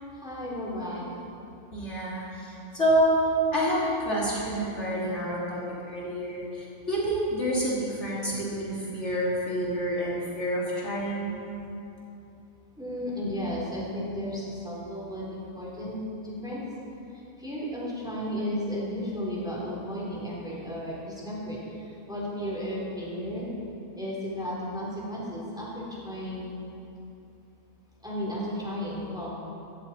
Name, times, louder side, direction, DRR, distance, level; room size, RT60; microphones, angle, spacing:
voice 1, 0.1-1.0 6.6-6.8 11.6-11.7 12.8-15.9 16.2-16.6 17.1-23.5 23.9-26.5 28.0-29.3, equal, 5° right, -6 dB, 3.3 m, -34 dB
voice 2, 1.7-3.2 3.5-5.6 5.9-11.4, equal, 50° left, -7 dB, 3.1 m, -28 dB
16.0 x 13.5 x 4.3 m, 2.8 s
omnidirectional pair, 1.5 m